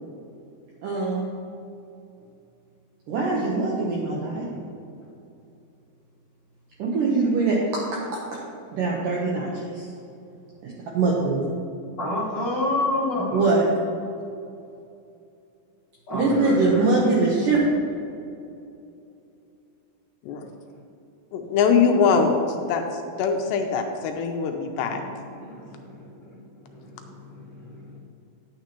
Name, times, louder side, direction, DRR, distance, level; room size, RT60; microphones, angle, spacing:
voice 1, 0.8-1.3 3.1-4.5 6.8-8.2 8.7-9.9 10.6-11.5 13.3-13.6 16.1-17.6, right 3 dB, 80° right, -3 dB, 1.9 m, -23 dB
voice 2, 4.3-4.6 12.0-13.5 16.1-16.8 20.4-20.5 24.5-25.1 25.3-28.0, left 1 dB, 40° left, -10 dB, 1.7 m, -30 dB
voice 3, 21.3-22.4 22.7-22.8 23.2-25.0, left 5 dB, 80° left, 4 dB, 2.7 m, -22 dB
10.0 x 9.4 x 2.9 m, 2.6 s
omnidirectional pair, 5.1 m